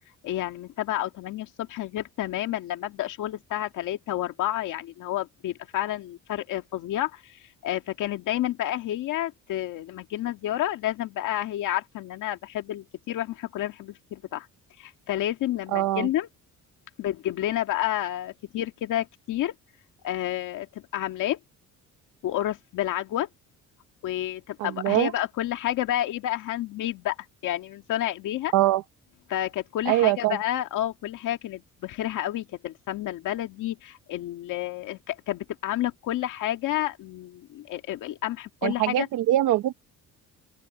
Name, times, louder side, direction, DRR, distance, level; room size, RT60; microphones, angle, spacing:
voice 1, 0.2-14.5 14.8-16.3 17.0-19.5 20.0-20.7 20.9-21.4 22.2-23.3 24.0-27.2 27.4-28.5 29.3-39.1, left 13 dB, 75° left, 2.1 m, -30 dB
voice 2, 15.7-16.1 24.6-25.1 28.5-28.8 29.8-30.4 38.6-39.7, right 14 dB, 85° right, 1.1 m, -23 dB
open air
cardioid pair, 140°, 31 cm